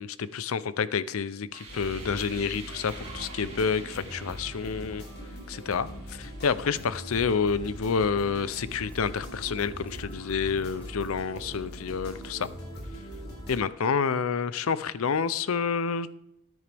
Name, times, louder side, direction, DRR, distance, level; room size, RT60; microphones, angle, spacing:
voice 1, 0.0-5.0 5.5-12.5 13.5-16.1, left 5 dB, 75° left, 16 dB, 0.5 m, -29 dB
sound 1, 1.4-8.3, right 3 dB, 30° right, 3.0 m, -49 dB
sound 2, 1.7-13.6, equal, 50° left, 3.7 m, -41 dB
sound 3, 8.8-11.2, left 1 dB, 5° left, 0.8 m, -51 dB
14.0 x 9.7 x 3.4 m, 0.82 s
head